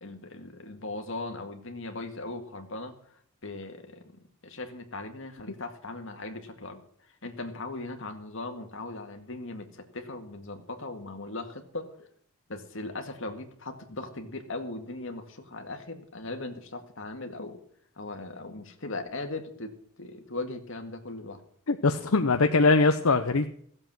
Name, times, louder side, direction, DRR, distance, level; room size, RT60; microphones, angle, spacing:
voice 1, 0.0-2.9 3.4-12.1 12.5-17.6 18.0-19.7 20.0-21.4, left 2 dB, 60° left, 5 dB, 2.0 m, -39 dB
voice 2, 21.7-23.5, left 3 dB, 80° left, 7 dB, 0.8 m, -22 dB
16.0 x 7.8 x 7.6 m, 0.63 s
head